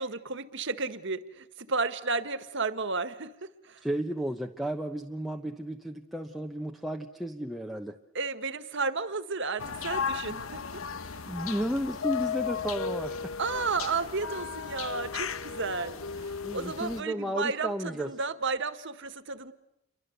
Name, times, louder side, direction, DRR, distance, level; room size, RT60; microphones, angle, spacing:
voice 1, 0.0-3.3 3.6-3.8 8.1-10.8 11.1-11.2 13.4-19.5, right 4 dB, 60° right, 11 dB, 1.7 m, -33 dB
voice 2, 3.8-8.0 11.3-13.3 16.4-18.1, equal, ahead, 2 dB, 1.0 m, -33 dB
sound 1, 9.6-17.0, left 6 dB, 75° left, 1.1 m, -35 dB
29.0 x 24.0 x 8.1 m, 0.81 s
head